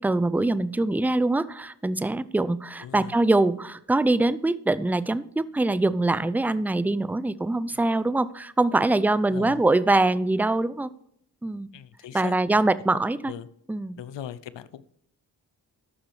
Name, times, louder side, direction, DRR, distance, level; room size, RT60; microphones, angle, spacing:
voice 1, 0.0-10.9 11.4-11.7 12.1-13.3 13.7-14.0, right 2 dB, 5° right, 16 dB, 0.4 m, -23 dB
voice 2, 2.8-3.2 7.7-7.8 9.3-9.6 11.7-12.6 12.9-13.5 14.0-14.8, left 10 dB, 85° left, 15 dB, 0.6 m, -40 dB
13.5 x 6.0 x 3.2 m, 0.70 s
cardioid pair, 40°, 42 cm